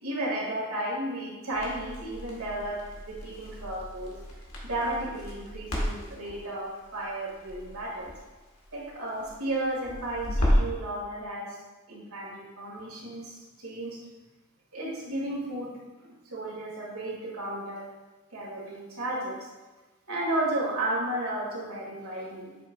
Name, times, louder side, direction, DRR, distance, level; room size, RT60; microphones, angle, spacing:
voice 1, 0.0-4.1 4.6-8.1 8.7-11.6 11.9-14.0 14.7-15.7 16.0-17.8 18.3-19.5 20.1-22.6, right 1 dB, 85° right, -5 dB, 1.8 m, -33 dB
Crackle, 1.5-10.8, equal, 85° left, 1.6 m, -33 dB
8.0 x 6.3 x 2.2 m, 1.2 s
head